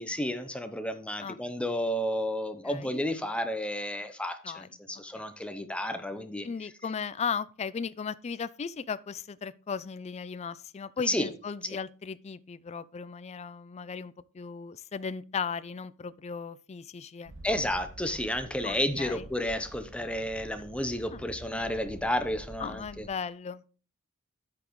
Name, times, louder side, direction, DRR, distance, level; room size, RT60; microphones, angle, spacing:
voice 1, 0.0-6.5 11.1-11.3 17.4-23.1, left 1 dB, 5° left, 0.8 m, -31 dB
voice 2, 2.6-3.0 4.4-4.7 4.9-5.0 6.4-17.3 18.6-19.3 21.1-21.3 21.5-21.6 22.6-23.7, left 6 dB, 30° left, 0.4 m, -36 dB
sound 1, 17.2-23.1, right 1 dB, 55° right, 1.2 m, -48 dB
10.0 x 8.4 x 3.1 m
head